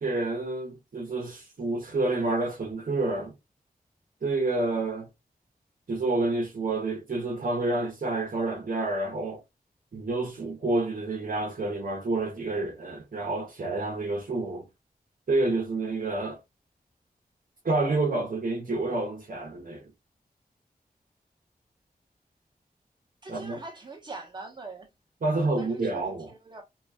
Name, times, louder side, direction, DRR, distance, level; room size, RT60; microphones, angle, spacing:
voice 1, 0.0-3.3 4.2-5.1 5.9-9.4 9.9-14.7 15.3-16.4 17.6-19.9 23.3-23.6 25.2-26.3, right 2 dB, 65° right, 1.0 m, -29 dB
voice 2, 23.2-24.9 25.3-26.6, right 3 dB, 30° right, 1.2 m, -43 dB
2.9 x 2.7 x 2.4 m
wide cardioid pair, 90°, 16 cm